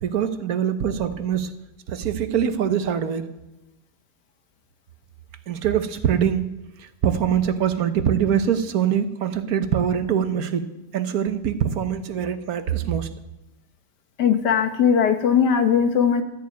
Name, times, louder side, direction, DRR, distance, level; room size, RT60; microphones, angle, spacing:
voice 1, 0.0-1.5 1.9-3.3 5.5-6.5 6.8-10.7 10.9-13.1, right 8 dB, 65° right, 9 dB, 1.4 m, -23 dB
voice 2, 14.2-16.2, left 7 dB, 90° left, 7 dB, 1.8 m, -19 dB
13.0 x 7.0 x 9.4 m, 1.0 s
omnidirectional pair, 1.7 m